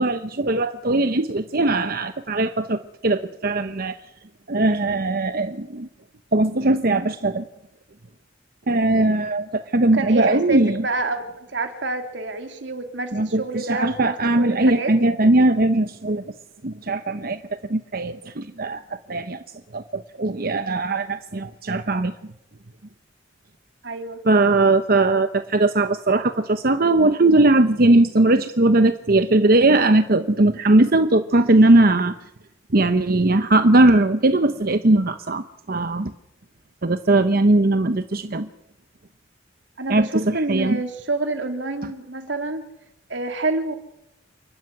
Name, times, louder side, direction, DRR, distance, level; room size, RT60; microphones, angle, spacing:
voice 1, 0.0-4.0 4.5-5.9 6.3-7.5 8.7-10.8 13.1-16.2 16.6-17.4 17.7-18.8 19.1-19.4 19.7-22.1 24.3-32.1 32.7-36.1 36.8-38.5 39.9-40.8, right 2 dB, 50° right, 9 dB, 1.0 m, -19 dB
voice 2, 9.9-14.9 23.8-24.2 39.8-42.7 43.1-43.8, right 3 dB, 75° right, 6 dB, 3.0 m, -28 dB
29.0 x 12.5 x 9.8 m, 0.85 s
head